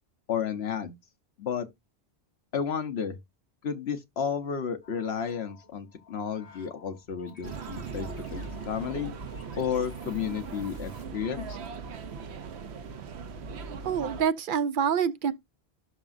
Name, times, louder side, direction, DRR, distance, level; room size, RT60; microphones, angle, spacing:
voice 1, 0.3-1.0 1.4-1.7 2.5-3.2 3.6-9.1 9.6-11.6, left 7 dB, 80° left, 1.2 m, -32 dB
sound 1, 4.8-11.0, left 4 dB, 35° left, 1.9 m, -54 dB
sound 2, 7.4-14.2, right 5 dB, 90° right, 1.1 m, -39 dB
voice 2, 13.8-15.3, right 7 dB, 60° right, 0.7 m, -26 dB
12.0 x 4.9 x 2.6 m
omnidirectional pair, 1.1 m